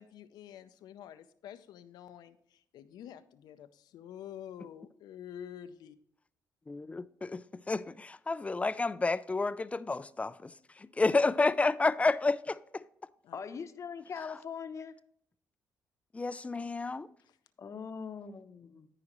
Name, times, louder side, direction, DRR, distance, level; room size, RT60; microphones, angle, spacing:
voice 1, 0.0-6.0 11.2-11.3 13.2-13.4 17.2-17.4, left 10 dB, 85° left, 0.6 m, -48 dB
voice 2, 6.7-12.8 16.1-17.1, left 3 dB, 20° left, 0.4 m, -30 dB
voice 3, 13.3-14.9 17.6-18.9, left 6 dB, 45° left, 0.8 m, -41 dB
13.5 x 4.9 x 3.0 m
cardioid pair, 90°, 7 cm